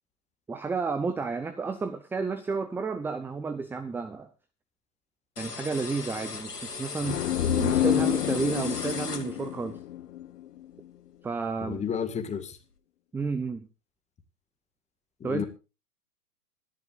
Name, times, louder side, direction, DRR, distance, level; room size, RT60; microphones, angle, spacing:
voice 1, 0.5-4.3 5.4-7.2 7.6-9.8 11.2-11.8 13.1-13.7 15.2-15.4, right 4 dB, 5° right, 10 dB, 0.7 m, -31 dB
sound 1, 5.4-9.7, left 4 dB, 85° left, 2.6 m, -38 dB
sound 2, 7.0-10.7, left 11 dB, 55° left, 1.4 m, -28 dB
voice 2, 11.6-12.6 15.2-15.4, left 7 dB, 15° left, 9 dB, 1.9 m, -31 dB
25.0 x 11.5 x 2.6 m, 0.32 s
figure-of-eight pair, 115°, 46 cm